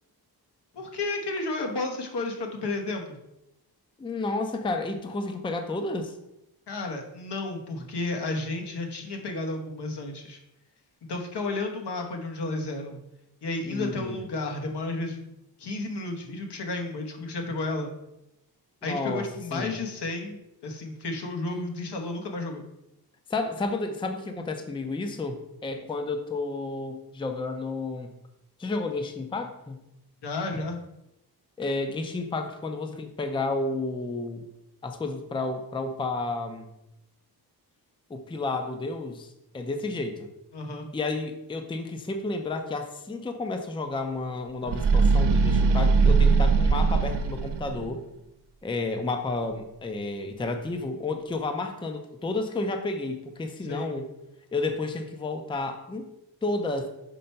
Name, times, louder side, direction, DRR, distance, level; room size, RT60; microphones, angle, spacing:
voice 1, 0.7-3.2 6.7-10.4 11.1-13.0 13.4-15.2 15.6-17.9 18.8-22.6 30.2-30.8 40.5-40.9 53.7-54.0, left 2 dB, 80° left, 2 dB, 1.3 m, -32 dB
voice 2, 4.0-6.2 13.6-14.2 18.8-19.8 23.3-28.1 28.6-29.8 31.6-34.4 34.8-36.7 38.1-40.3 40.9-48.1 48.6-54.1 54.5-56.1 56.4-56.9, left 3 dB, 15° left, 6 dB, 0.4 m, -31 dB
sound 1, 44.6-47.9, right 4 dB, 80° right, 0.6 m, -21 dB
5.3 x 4.3 x 5.6 m, 0.87 s
wide cardioid pair, 180°, 40 cm